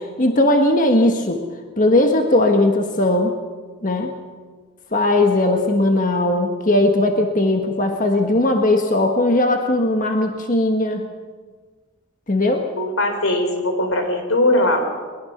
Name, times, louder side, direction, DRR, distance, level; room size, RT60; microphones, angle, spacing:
voice 1, 0.2-1.4 1.8-3.3 3.8-4.1 4.9-11.0 12.3-12.6, left 1 dB, 40° left, 3 dB, 1.5 m, -18 dB
voice 2, 12.8-14.8, left 1 dB, 85° left, 5 dB, 4.2 m, -20 dB
22.0 x 21.5 x 6.0 m, 1.5 s
head